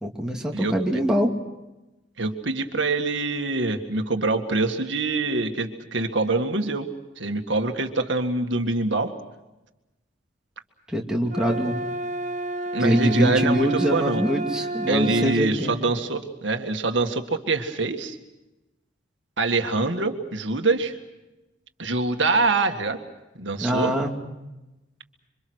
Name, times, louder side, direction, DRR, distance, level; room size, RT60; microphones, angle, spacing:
voice 1, 0.0-1.3 10.9-11.7 12.8-15.8 23.6-24.1, equal, 5° right, -1 dB, 2.5 m, -23 dB
voice 2, 0.5-1.0 2.2-6.9 7.2-9.1 12.7-14.2 14.9-18.2 19.4-20.9 21.8-23.0 23.4-23.9, right 3 dB, 75° right, 5 dB, 1.9 m, -25 dB
sound 1, 11.3-15.4, right 2 dB, 40° right, 1.5 m, -30 dB
27.0 x 25.0 x 6.4 m, 1.0 s
head